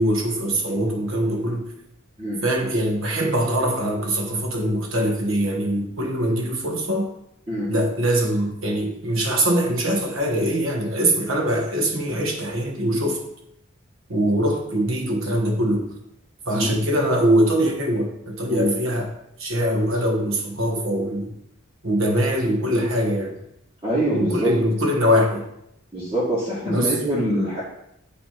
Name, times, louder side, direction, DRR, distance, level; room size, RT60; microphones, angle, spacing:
voice 1, 0.0-1.7 2.4-7.1 7.7-13.2 14.1-15.9 16.5-19.1 19.4-21.3 21.8-23.4 24.1-25.5 26.7-27.0, equal, 75° right, 1 dB, 1.3 m, -22 dB
voice 2, 23.8-24.5 25.9-27.6, equal, 20° right, -12 dB, 1.8 m, -24 dB
8.6 x 3.2 x 4.4 m, 0.77 s
head